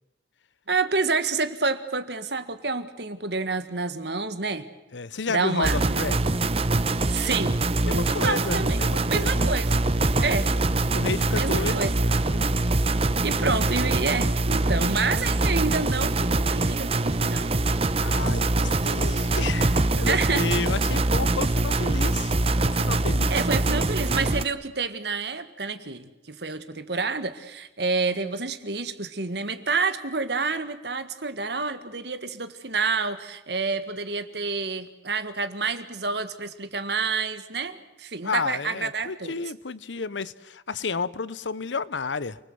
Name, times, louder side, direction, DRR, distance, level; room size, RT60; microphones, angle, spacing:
voice 1, 0.7-4.7 5.3-6.0 7.1-8.8 9.1-9.9 10.2-10.5 11.3-11.9 13.2-17.6 20.0-20.5 23.3-39.3, right 4 dB, 65° right, 1.7 m, -28 dB
voice 2, 4.9-6.3 7.8-9.5 10.2-10.4 10.9-11.8 12.3-12.5 18.0-22.3 22.6-23.3 38.2-42.4, left 4 dB, 80° left, 0.9 m, -31 dB
sound 1, 5.6-24.4, right 2 dB, 35° right, 0.9 m, -24 dB
29.5 x 20.0 x 7.9 m
head